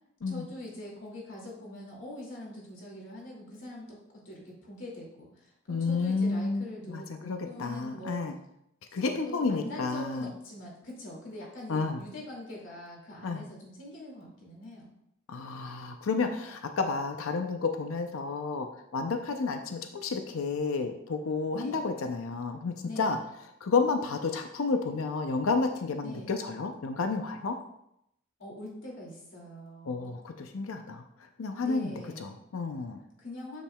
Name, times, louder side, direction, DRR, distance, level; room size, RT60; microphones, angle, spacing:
voice 1, 0.3-8.2 9.0-14.9 21.5-21.8 22.8-23.2 26.0-26.3 28.4-30.1 31.6-32.4 33.2-33.6, left 1 dB, 65° left, -3 dB, 2.4 m, -43 dB
voice 2, 5.7-8.4 8.9-10.3 11.7-12.0 13.2-13.4 15.3-18.7 18.9-23.2 23.6-27.6 29.9-31.9 32.2-33.0, left 4 dB, 85° left, 6 dB, 0.5 m, -31 dB
7.3 x 7.1 x 2.3 m, 0.78 s
head